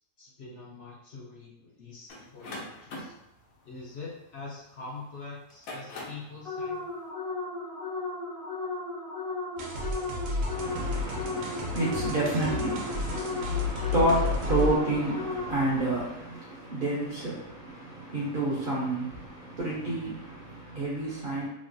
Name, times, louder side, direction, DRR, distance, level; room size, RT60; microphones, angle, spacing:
voice 1, 0.2-3.2 3.6-6.8, left 3 dB, 65° left, -5 dB, 0.8 m, -44 dB
sound 1, 2.1-4.8 5.4-6.3, left 2 dB, 90° left, 1.2 m, -42 dB
sound 2, 6.4-15.8, left 3 dB, ahead, 0.4 m, -35 dB
sound 3, 9.6-14.8, left 3 dB, 90° right, 1.1 m, -32 dB
voice 2, 10.5-21.5, right 2 dB, 60° right, -6 dB, 0.5 m, -30 dB
3.1 x 2.2 x 2.5 m, 0.86 s
omnidirectional pair, 1.6 m